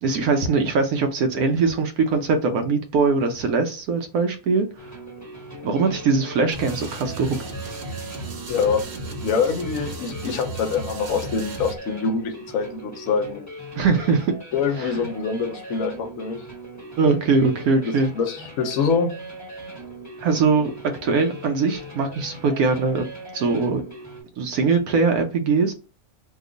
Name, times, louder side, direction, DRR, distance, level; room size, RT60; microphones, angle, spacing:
voice 1, 0.0-4.7 5.6-7.4 13.8-14.3 14.8-15.0 17.0-18.1 20.2-23.1 23.3-23.8 24.4-25.7, right 4 dB, 75° right, 1.0 m, -21 dB
sound 1, 4.8-24.2, equal, 15° left, 0.9 m, -40 dB
sound 2, 6.5-11.8, right 2 dB, 50° right, 0.9 m, -35 dB
voice 2, 8.5-8.8 9.2-13.4 14.5-16.4 17.8-19.1, left 5 dB, 65° left, 1.0 m, -25 dB
2.8 x 2.3 x 3.7 m
omnidirectional pair, 1.6 m